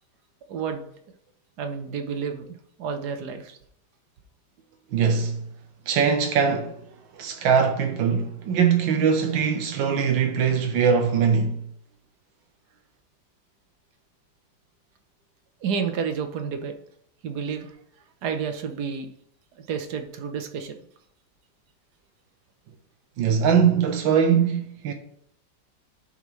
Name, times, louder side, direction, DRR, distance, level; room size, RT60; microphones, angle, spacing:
voice 1, 0.5-0.8 1.6-2.5 2.8-3.6 15.6-16.7 17.2-17.7 18.2-19.1 19.5-20.8, right 6 dB, 65° right, 1.3 m, -30 dB
voice 2, 4.9-5.4 5.9-6.8 7.1-11.6 23.2-24.9, right 6 dB, 85° right, 1.6 m, -21 dB
11.0 x 5.5 x 3.1 m
omnidirectional pair, 2.0 m